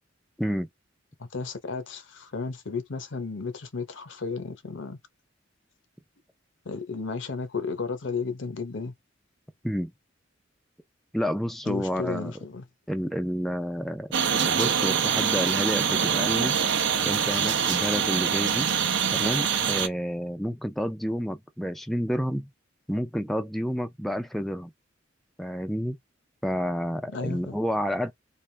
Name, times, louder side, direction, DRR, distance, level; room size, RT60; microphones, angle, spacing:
voice 1, 1.2-5.0 6.6-8.9 11.7-12.7 27.1-27.6, left 4 dB, 70° left, 0.7 m, -33 dB
voice 2, 11.1-12.3 12.9-14.1 14.4-16.6 17.0-18.7 19.1-22.5 22.9-24.7 25.4-26.0 26.4-28.1, equal, ahead, 0.3 m, -29 dB
sound 1, 14.1-19.9, right 7 dB, 65° right, 0.6 m, -24 dB
3.3 x 2.5 x 3.2 m
head